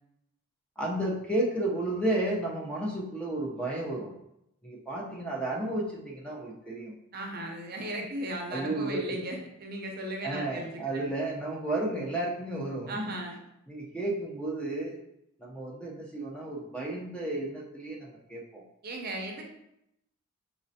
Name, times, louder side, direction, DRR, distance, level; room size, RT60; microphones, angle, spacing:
voice 1, 0.8-4.1 4.6-6.9 8.5-9.2 10.2-13.2 13.7-15.0 15.4-18.6, right 1 dB, 5° left, -3 dB, 0.6 m, -32 dB
voice 2, 7.1-11.1 12.9-13.4 18.8-19.4, right 1 dB, 45° right, 1 dB, 0.7 m, -36 dB
5.2 x 3.1 x 2.7 m, 0.81 s
head